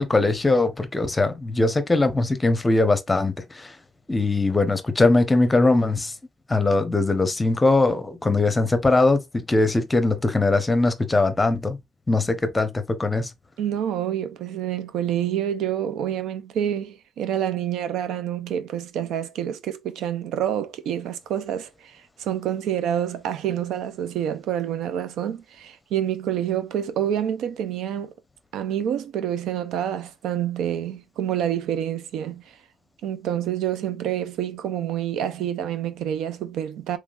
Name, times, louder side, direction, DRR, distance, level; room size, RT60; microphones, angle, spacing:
voice 1, 0.0-3.8 4.1-6.1 6.5-11.8 12.1-13.3, left 2 dB, 20° left, 0.8 m, -21 dB
voice 2, 13.6-28.1 28.5-32.6 33.0-37.0, right 10 dB, 85° right, 0.5 m, -27 dB
3.6 x 3.1 x 2.4 m
cardioid pair, 90°, 0 cm